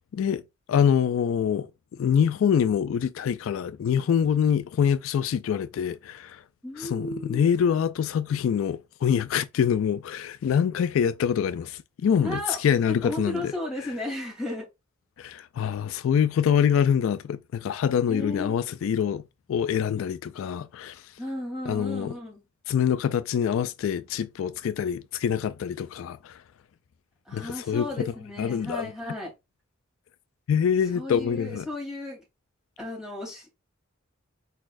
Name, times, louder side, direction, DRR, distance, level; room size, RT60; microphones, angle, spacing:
voice 1, 0.7-6.4 6.8-13.5 15.2-19.2 19.5-21.0 21.7-22.1 22.7-26.4 27.3-28.9 30.5-31.7, left 8 dB, 75° left, 0.3 m, -25 dB
voice 2, 6.6-7.5 12.2-12.6 13.0-14.7 18.1-18.6 21.2-22.4 27.3-29.3 30.9-32.2 32.8-33.5, left 1 dB, 5° right, 2.9 m, -34 dB
4.8 x 4.1 x 2.5 m
head